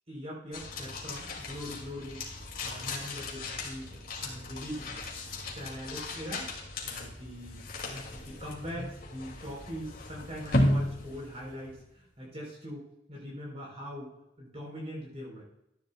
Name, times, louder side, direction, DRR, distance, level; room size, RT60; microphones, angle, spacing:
voice 1, 0.1-2.2 2.6-5.0 5.4-6.5 6.8-7.6 7.9-15.4, equal, 35° right, -4 dB, 3.9 m, -42 dB
sound 1, 0.5-11.9, left 1 dB, 55° left, 2.4 m, -35 dB
14.0 x 10.0 x 2.3 m, 0.84 s
head